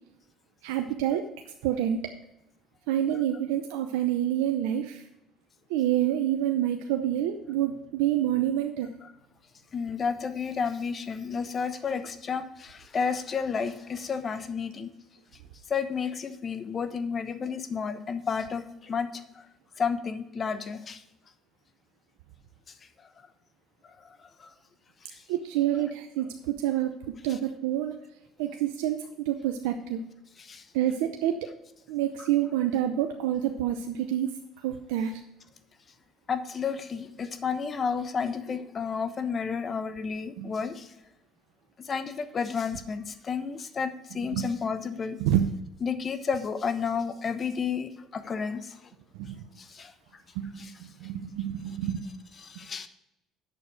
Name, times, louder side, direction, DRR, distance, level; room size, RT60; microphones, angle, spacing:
voice 1, 0.6-1.2 1.6-2.0 2.9-5.0 5.7-8.9 25.3-26.9 27.2-27.9 28.4-29.0 29.3-30.0 30.7-31.3 31.9-34.3 34.6-35.1 40.4-40.5 44.3-44.4 45.2-45.5 49.2-49.4 50.4-50.7 51.0-52.0, right 11 dB, 85° right, 5 dB, 0.7 m, -27 dB
voice 2, 9.7-14.9 15.7-19.1 19.8-21.0 24.4-24.5 30.4-30.6 32.2-32.3 36.3-40.9 41.8-45.2 45.8-48.8 49.6-49.9 50.6-50.7 52.4-52.9, left 6 dB, 40° left, 10 dB, 1.0 m, -31 dB
8.5 x 6.7 x 4.7 m, 0.85 s
supercardioid pair, 80°, 0 cm